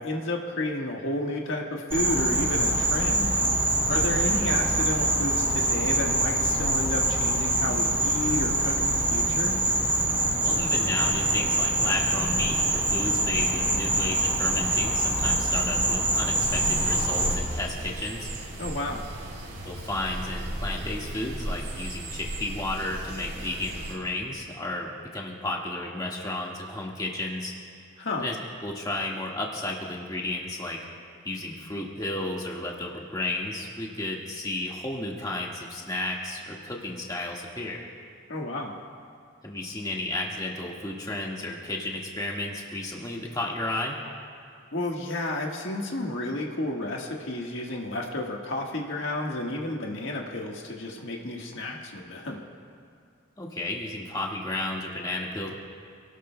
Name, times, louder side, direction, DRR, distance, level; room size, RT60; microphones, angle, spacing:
voice 1, 0.0-3.4 3.8-9.6 18.6-19.0 28.0-28.3 38.3-38.7 44.7-52.4, left 2 dB, 65° left, -1 dB, 1.5 m, -31 dB
Insect, 1.9-17.3, right 1 dB, 10° right, 3.0 m, -25 dB
voice 2, 3.9-4.3 10.4-18.3 19.6-27.5 28.2-28.4 28.6-30.8 31.2-37.8 39.4-44.0 53.4-55.5, left 2 dB, 20° left, -2 dB, 1.7 m, -33 dB
sound 1, 16.4-23.9, right 1 dB, 85° right, 4.7 m, -35 dB
28.0 x 18.5 x 2.3 m, 2.3 s
head